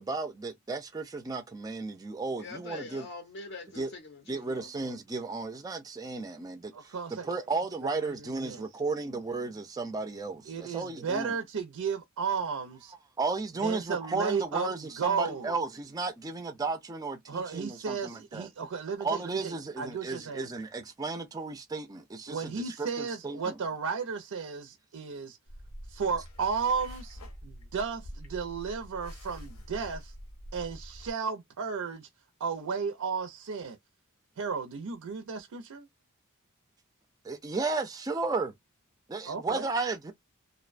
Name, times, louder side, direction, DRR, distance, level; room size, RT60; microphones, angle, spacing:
voice 1, 0.0-3.1 3.8-3.9 4.3-6.9 7.2-11.3 13.2-18.5 19.0-23.6 37.2-38.5 39.1-40.1, right 3 dB, 15° right, 0.3 m, -34 dB
voice 2, 2.4-4.7, left 3 dB, 55° left, 0.5 m, -44 dB
voice 3, 6.7-7.3 7.8-8.7 10.5-12.9 13.6-15.5 17.3-20.5 22.3-25.4 25.9-30.1 30.5-32.1 32.4-33.8 34.4-35.9 39.3-39.7, right 5 dB, 80° right, 0.5 m, -34 dB
sound 1, 25.5-31.1, equal, 85° left, 0.7 m, -45 dB
2.5 x 2.1 x 2.4 m
head